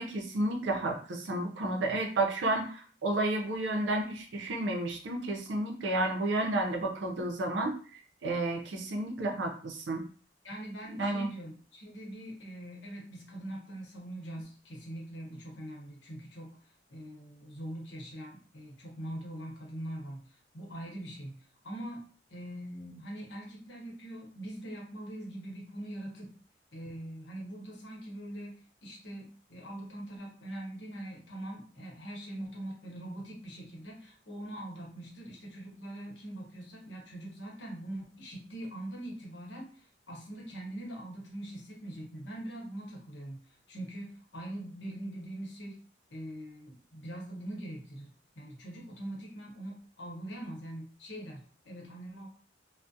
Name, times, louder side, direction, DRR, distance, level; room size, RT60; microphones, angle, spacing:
voice 1, 0.0-10.0 10.9-11.3, right 2 dB, 75° right, 3 dB, 0.5 m, -31 dB
voice 2, 10.4-16.5 16.9-20.3 20.5-21.4 21.6-22.0 22.3-26.4 26.7-28.5 28.8-43.4 43.7-45.8 46.1-48.1 48.4-52.3, right 1 dB, 75° left, -1 dB, 0.9 m, -42 dB
2.3 x 2.1 x 2.6 m, 0.42 s
head